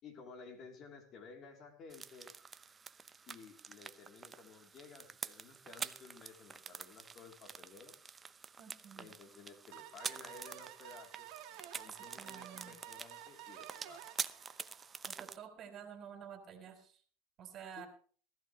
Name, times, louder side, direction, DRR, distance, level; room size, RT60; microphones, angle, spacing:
voice 1, 0.0-2.3 3.3-8.0 8.9-11.3 11.7-14.0 17.8-17.9, left 4 dB, 40° left, 4 dB, 3.3 m, -55 dB
sound 1, 1.9-15.4, right 5 dB, 20° right, 0.7 m, -47 dB
voice 2, 8.6-9.1 12.2-12.8 15.1-17.0 17.4-17.9, right 8 dB, 40° right, 7 dB, 3.4 m, -50 dB
sound 2, 9.7-15.1, right 14 dB, 60° right, 2.4 m, -52 dB
18.5 x 14.0 x 3.2 m, 0.43 s
hypercardioid pair, 105°, 0 cm